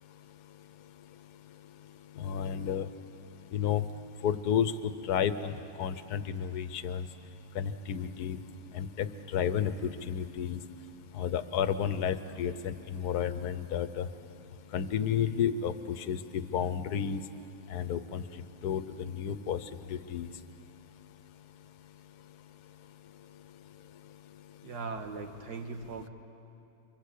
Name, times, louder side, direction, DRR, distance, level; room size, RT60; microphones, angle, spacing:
voice 1, 2.2-2.9 3.5-3.8 4.2-7.0 7.5-8.4 8.7-10.6 11.1-14.1 14.7-17.2 17.7-18.2 18.6-19.6 19.9-20.3, left 8 dB, 70° left, 12 dB, 1.4 m, -31 dB
voice 2, 24.6-26.1, right 4 dB, 70° right, 5 dB, 2.3 m, -39 dB
28.5 x 24.0 x 8.5 m, 2.6 s
omnidirectional pair, 1.8 m